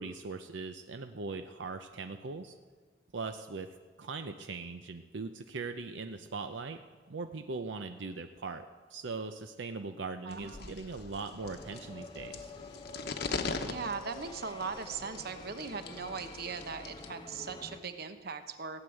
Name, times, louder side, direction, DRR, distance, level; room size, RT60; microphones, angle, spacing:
voice 1, 0.0-2.5 3.1-3.7 4.0-6.8 7.1-12.5, right 4 dB, 80° right, 8 dB, 0.6 m, -40 dB
voice 2, 10.2-10.8 13.6-18.8, right 5 dB, 60° right, 9 dB, 0.9 m, -39 dB
sound 1, 10.3-17.1, left 4 dB, 65° left, 1.0 m, -42 dB
sound 2, 11.4-17.8, left 2 dB, 25° left, 0.9 m, -49 dB
16.0 x 8.0 x 9.0 m, 1.5 s
head